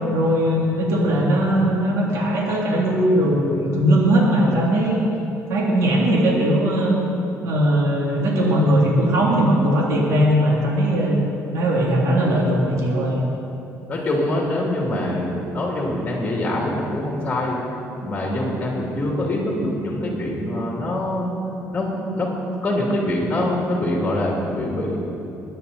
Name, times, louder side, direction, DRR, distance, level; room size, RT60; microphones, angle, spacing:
voice 1, 0.1-5.0 5.5-7.0 7.4-11.2 11.5-13.3, right 1 dB, 65° right, -3 dB, 2.9 m, -19 dB
voice 2, 13.9-17.6 18.0-21.3 21.7-22.3 22.6-25.0, left 1 dB, 20° left, -3 dB, 2.6 m, -24 dB
21.5 x 9.7 x 4.2 m, 2.9 s
cardioid pair, 140°, 6 cm